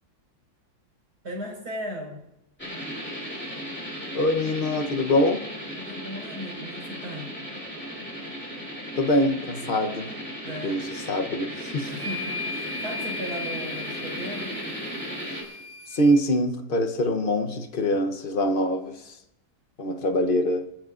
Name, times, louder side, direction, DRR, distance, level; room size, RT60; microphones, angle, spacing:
voice 1, 1.2-2.2 5.8-7.3 10.4-10.8 11.9-14.6, equal, 50° right, 5.6 m, -36 dB
sound 1, 2.6-15.4, equal, 5° left, 2.6 m, -36 dB
voice 2, 4.1-5.5 9.0-10.1 10.6-11.9 15.3-15.5 15.9-19.2 19.8-20.6, left 1 dB, 40° left, 0.7 m, -24 dB
sound 2, 11.9-16.2, left 3 dB, 75° right, 1.7 m, -37 dB
26.5 x 14.0 x 2.5 m
omnidirectional pair, 2.2 m